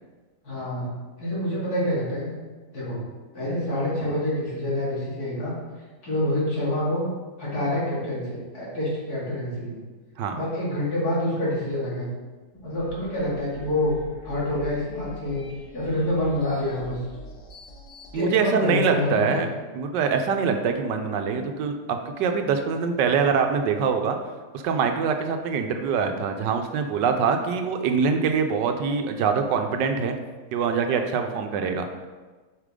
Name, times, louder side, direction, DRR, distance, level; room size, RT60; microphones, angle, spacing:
voice 1, 0.4-0.9 1.2-2.3 2.7-3.0 3.3-5.6 6.0-7.1 7.4-9.8 10.3-12.1 12.6-13.9 14.2-15.4 15.7-17.0 18.1-19.4, left 1 dB, 60° left, -7 dB, 2.8 m, -27 dB
sound 1, 12.7-18.2, equal, 80° left, 1.9 m, -44 dB
voice 2, 18.1-19.5 19.7-24.2 24.5-30.1 30.5-31.9, right 6 dB, 85° right, 5 dB, 1.3 m, -24 dB
8.2 x 5.3 x 3.7 m, 1.3 s
omnidirectional pair, 1.9 m